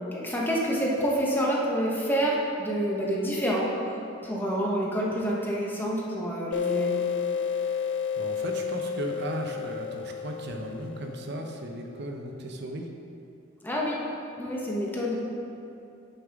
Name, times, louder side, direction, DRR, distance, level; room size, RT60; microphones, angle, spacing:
voice 1, 0.1-3.7 4.2-6.9 13.6-14.0 14.4-15.2, equal, 10° left, -4 dB, 1.0 m, -27 dB
sound 1, 6.5-11.8, left 7 dB, 60° left, 0.4 m, -31 dB
voice 2, 8.2-12.9, right 1 dB, 55° right, 3 dB, 0.7 m, -36 dB
9.2 x 5.5 x 3.6 m, 2.7 s
head